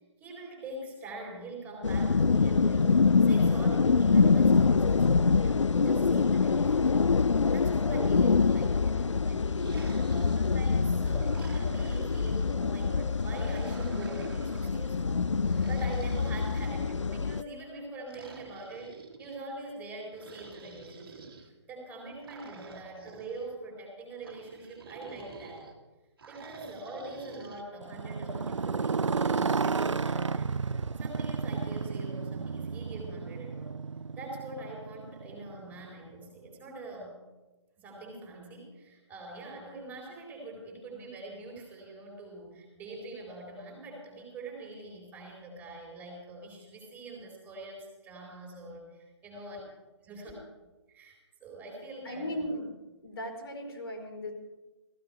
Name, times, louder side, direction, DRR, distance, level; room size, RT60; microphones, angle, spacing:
voice 1, 0.2-9.7 10.1-15.3 15.7-25.7 26.3-30.5 31.0-33.8 34.2-37.2 37.8-49.6 50.0-50.3 50.9-52.5, right 2 dB, 10° right, -1 dB, 4.1 m, -43 dB
sound 1, 1.8-17.4, left 4 dB, 80° left, 0.5 m, -25 dB
sound 2, 9.5-10.7 11.2-12.6 13.2-14.8 15.5-17.2 18.1-19.4 20.1-21.5 22.2-23.5 24.2-25.7 26.2-27.7, right 4 dB, 50° right, 2.4 m, -49 dB
Motorcycle, 27.8-35.9, right 5 dB, 75° right, 0.5 m, -32 dB
voice 2, 52.0-52.7 53.0-54.3, equal, 55° left, 2 dB, 4.2 m, -36 dB
16.0 x 15.5 x 5.1 m, 1.2 s
figure-of-eight pair, 140°, 15 cm